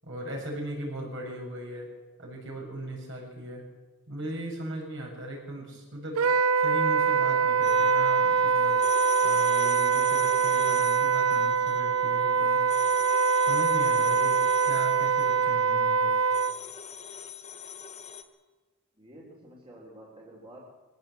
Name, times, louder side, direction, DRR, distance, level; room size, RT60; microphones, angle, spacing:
voice 1, 0.0-1.9 2.2-3.6 4.1-12.6 13.5-14.4 14.7-16.1, right 1 dB, 55° right, -1 dB, 7.5 m, -38 dB
Wind instrument woodwind instrument, 6.2-16.6, right 5 dB, 80° right, 0.6 m, -24 dB
sound 1, 7.6-18.2, left 7 dB, 30° left, 1.4 m, -42 dB
voice 2, 18.9-20.6, right 1 dB, 25° right, -3 dB, 3.8 m, -49 dB
21.5 x 17.5 x 8.0 m, 1.2 s
head